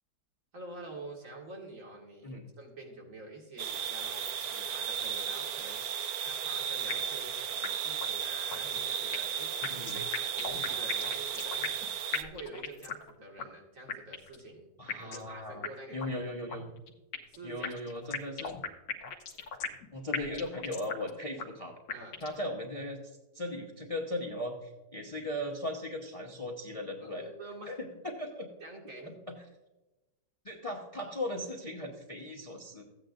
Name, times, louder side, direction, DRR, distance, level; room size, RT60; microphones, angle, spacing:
voice 1, 0.5-5.8 6.2-9.5 9.9-11.7 12.1-14.7 15.0-16.3 17.3-17.8 21.9-22.2 27.0-27.8 28.6-29.5, right 2 dB, 50° right, 0 dB, 2.4 m, -47 dB
sound 1, 3.6-12.2, right 8 dB, 65° right, 1.1 m, -34 dB
sound 2, 6.9-7.3 7.6-7.7 8.0-8.1 8.5-9.4 9.6-11.9 12.1-13.1 13.4-13.5 13.9-14.4 14.9-15.3 15.6-15.7 16.0-16.1 16.5-17.4 17.6-19.9 20.1-21.1 21.4-21.5 21.9-22.4, left 6 dB, 85° left, 1.6 m, -37 dB
voice 2, 9.6-10.0 14.8-16.7 17.4-18.5 19.9-21.8 22.2-23.0 23.3-27.3 27.7-28.5 29.1-29.4 30.4-32.8, left 1 dB, 25° left, 0 dB, 0.8 m, -38 dB
14.5 x 9.0 x 2.6 m, 1.0 s
omnidirectional pair, 1.9 m